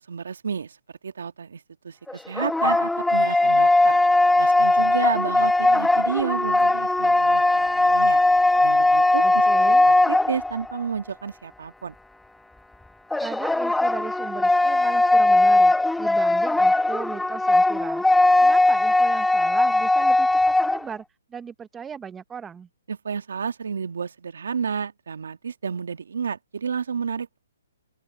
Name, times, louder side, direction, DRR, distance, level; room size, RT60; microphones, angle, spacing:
voice 1, 0.0-4.0 4.4-8.2 8.6-11.9 22.9-27.4, right 6 dB, 75° right, 1.6 m, -31 dB
sound 1, 2.1-10.8 13.1-20.9, left 2 dB, 5° left, 0.5 m, -19 dB
voice 2, 9.2-9.9 13.2-21.0 21.3-22.7, right 7 dB, 10° right, 0.9 m, -37 dB
open air
hypercardioid pair, 145°, 0 cm